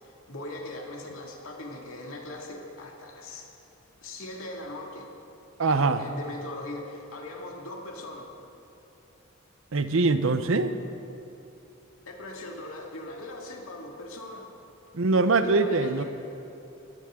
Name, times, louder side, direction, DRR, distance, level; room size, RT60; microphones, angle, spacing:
voice 1, 0.0-3.5 4.0-5.1 5.7-8.3 12.1-14.5 15.2-16.0, left 1 dB, 75° left, 0 dB, 2.3 m, -40 dB
voice 2, 5.6-6.0 9.7-10.7 14.9-16.0, right 3 dB, 70° right, 10 dB, 0.8 m, -23 dB
20.5 x 15.5 x 3.8 m, 2.9 s
head